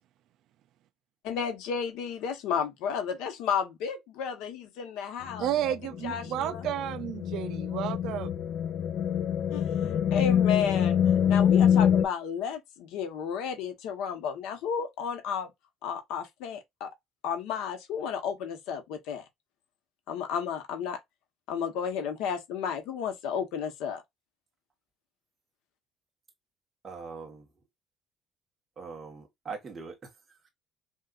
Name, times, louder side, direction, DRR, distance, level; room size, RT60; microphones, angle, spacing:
voice 1, 1.2-5.7 6.0-6.7 9.5-11.0 11.3-15.5 15.8-16.9 17.2-19.2 20.1-21.0 21.5-24.0, left 7 dB, 85° left, 1.1 m, -32 dB
sound 1, 5.3-12.0, left 9 dB, 55° left, 0.5 m, -25 dB
voice 2, 5.4-8.3, right 11 dB, 60° right, 0.3 m, -32 dB
voice 3, 26.8-27.4 28.8-30.5, right 5 dB, 25° right, 1.3 m, -42 dB
5.3 x 2.4 x 2.4 m
cardioid pair, 155°, 0 cm